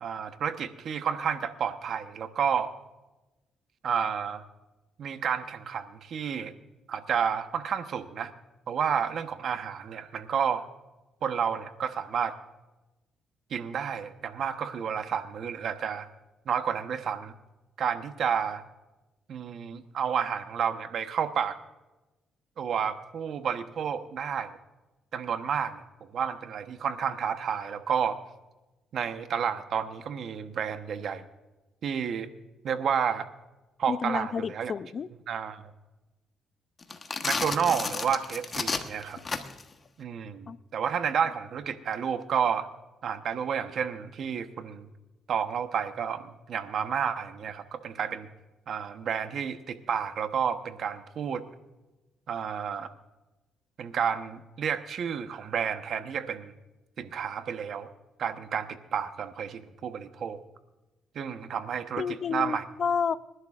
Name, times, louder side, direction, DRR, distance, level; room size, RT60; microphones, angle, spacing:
voice 1, 0.0-2.7 3.8-4.4 5.0-6.5 6.9-8.3 8.7-10.6 11.2-12.4 13.5-16.1 16.5-17.3 17.8-18.6 19.3-21.6 22.6-24.6 25.1-25.8 26.1-28.2 28.9-31.2 31.8-32.3 32.6-33.3 33.8-34.7 35.3-35.6 37.2-39.2 40.0-42.7 43.0-44.9 45.3-48.3 48.7-51.4 52.3-52.9 53.8-56.5 57.0-57.9 58.2-60.4 61.1-62.6, right 7 dB, 65° right, 9 dB, 1.0 m, -30 dB
voice 2, 33.9-35.1 40.5-40.6 62.0-63.1, left 6 dB, 50° left, 16 dB, 0.4 m, -30 dB
sound 1, 36.8-39.7, left 4 dB, 35° left, 1.1 m, -32 dB
26.5 x 11.5 x 2.5 m, 1.1 s
cardioid pair, 90°, 0 cm